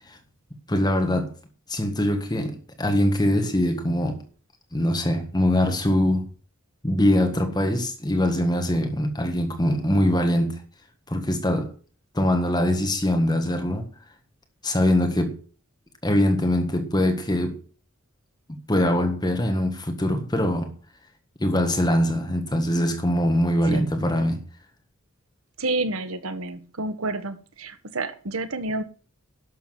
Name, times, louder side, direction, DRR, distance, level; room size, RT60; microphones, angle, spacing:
voice 1, 0.7-1.3 1.7-4.2 4.7-6.2 6.8-10.6 11.1-11.7 12.1-13.9 14.6-15.4 16.0-17.6 18.7-20.7 21.4-24.4, left 1 dB, 20° left, 1.6 m, -23 dB
voice 2, 25.6-28.8, right 2 dB, 80° right, 1.3 m, -29 dB
11.5 x 7.1 x 7.6 m
head